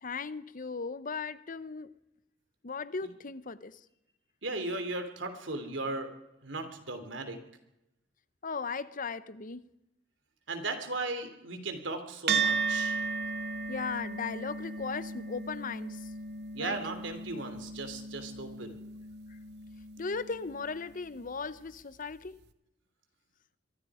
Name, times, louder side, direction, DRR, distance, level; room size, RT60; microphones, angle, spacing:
voice 1, 0.0-2.0 2.6-3.8 8.4-9.7 13.7-16.1 16.6-16.8 19.3-19.4 20.0-22.4, left 4 dB, 45° left, 0.8 m, -37 dB
voice 2, 4.4-6.1 6.4-7.4 10.5-13.0 16.5-18.8, right 2 dB, 80° right, 3.3 m, -36 dB
sound 1, 12.3-20.9, right 4 dB, 60° right, 1.1 m, -35 dB
25.0 x 23.0 x 5.0 m
head